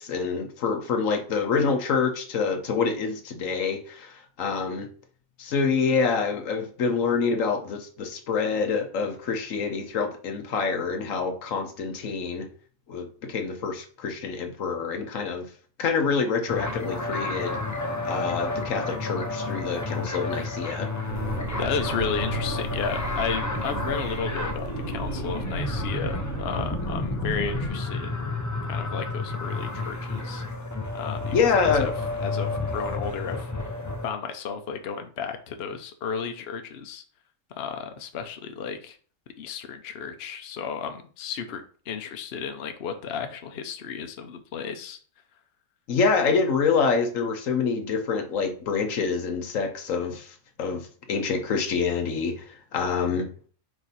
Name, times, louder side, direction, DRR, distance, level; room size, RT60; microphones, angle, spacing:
voice 1, 0.0-4.9 5.4-12.5 12.9-15.5 15.8-17.6 18.0-20.9 31.3-31.9 45.9-50.3 50.6-52.4 52.7-53.3, left 5 dB, 90° left, 5 dB, 1.3 m, -26 dB
sound 1, 16.5-34.1, left 2 dB, 20° left, 0.5 m, -31 dB
sound 2, 21.1-27.7, right 2 dB, 65° right, 2.5 m, -33 dB
voice 2, 21.6-28.2 28.7-30.4 30.9-31.4 31.6-31.9 32.2-33.5 34.0-37.0 37.5-39.0 39.4-45.0, left 6 dB, 55° left, 7 dB, 0.9 m, -33 dB
4.8 x 4.6 x 4.2 m, 0.42 s
omnidirectional pair, 1.3 m